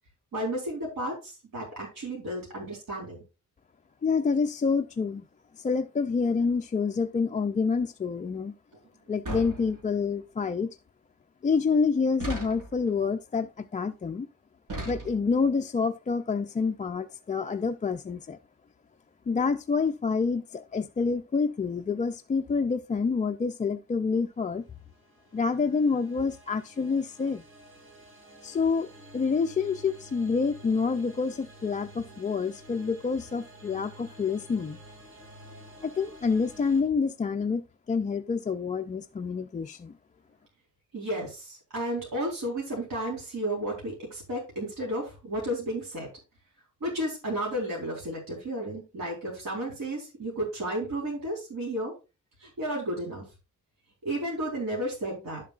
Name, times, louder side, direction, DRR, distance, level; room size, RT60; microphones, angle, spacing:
voice 1, 0.3-3.2 40.9-46.1 46.8-51.9 52.4-53.2 54.0-55.4, right 1 dB, 85° right, 4.1 m, -33 dB
voice 2, 4.0-5.2 5.6-8.5 9.1-10.8 11.4-14.3 14.9-18.4 19.3-24.6 25.3-27.4 28.4-34.8 35.8-39.9, left 5 dB, 25° left, 0.3 m, -27 dB
sound 1, 9.2-10.1 12.2-12.9 14.7-15.5, right 1 dB, 70° right, 4.6 m, -37 dB
sound 2, 24.6-36.8, right 1 dB, 40° right, 2.7 m, -50 dB
11.0 x 7.5 x 2.4 m
wide cardioid pair, 160°, 33 cm